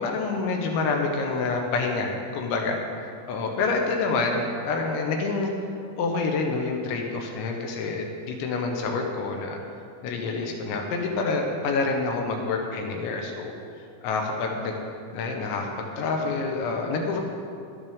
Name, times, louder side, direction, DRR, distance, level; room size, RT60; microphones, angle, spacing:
voice 1, 0.0-2.8 3.3-5.5 6.0-9.6 10.0-13.5 14.0-14.7 15.1-17.2, left 3 dB, 75° left, 1 dB, 3.0 m, -27 dB
12.5 x 12.0 x 3.6 m, 2.4 s
omnidirectional pair, 5.9 m